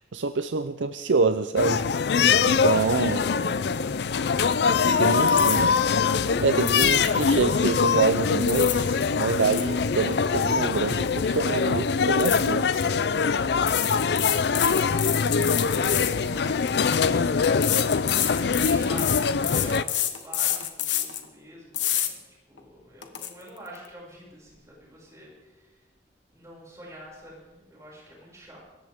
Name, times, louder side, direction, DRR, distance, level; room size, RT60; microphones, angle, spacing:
voice 1, 0.0-1.8 2.4-3.2 4.8-5.7 6.4-13.0, right 4 dB, 85° right, 10 dB, 0.6 m, -26 dB
sound 1, 1.6-19.8, left 5 dB, 60° left, 0.4 m, -23 dB
voice 2, 2.6-4.4 6.4-6.8 13.0-25.8 26.3-28.6, equal, 15° right, -5 dB, 6.5 m, -46 dB
sound 2, 5.3-5.9 6.6-7.2 8.2-8.9 9.2-11.1 11.3-11.6 12.2-12.9 13.6-16.8 17.6-21.2 21.7-22.1 22.6-22.7 23.0-23.3, left 11 dB, 85° left, 1.4 m, -28 dB
26.0 x 14.0 x 3.7 m, 1.2 s
head